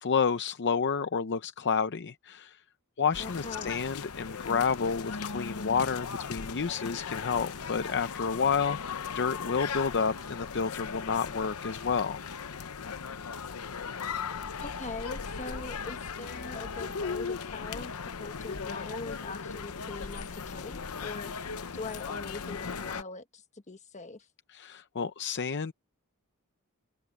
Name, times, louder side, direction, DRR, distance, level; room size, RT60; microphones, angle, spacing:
voice 1, 0.0-2.6 3.0-12.2 24.5-25.7, left 6 dB, 50° left, 0.6 m, -30 dB
sound 1, 3.1-23.0, left 5 dB, 80° left, 0.8 m, -38 dB
voice 2, 3.2-3.8 14.6-17.9 18.2-24.3, left 3 dB, 30° left, 1.4 m, -42 dB
open air
head